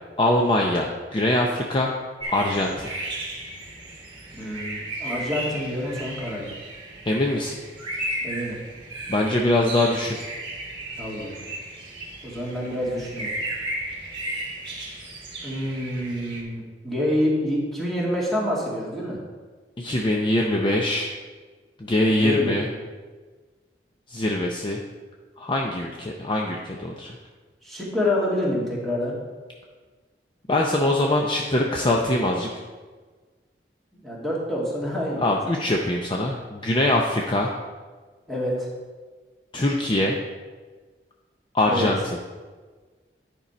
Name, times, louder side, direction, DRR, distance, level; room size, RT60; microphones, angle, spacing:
voice 1, 0.2-1.9 2.3-2.9 7.1-7.5 9.1-10.2 19.8-21.1 21.8-22.7 24.1-24.8 25.4-27.1 30.5-32.5 35.2-37.5 39.5-40.2 41.5-42.0, left 1 dB, 30° left, 0 dB, 0.6 m, -23 dB
sound 1, 2.2-16.4, right 1 dB, 30° right, 1.6 m, -34 dB
voice 2, 4.4-6.5 8.2-8.6 11.0-11.4 12.2-13.3 15.4-19.2 22.1-22.8 27.6-29.2 34.0-35.4 38.3-38.7 41.7-41.9, left 1 dB, ahead, -7 dB, 2.1 m, -27 dB
9.9 x 5.3 x 4.3 m, 1.4 s
head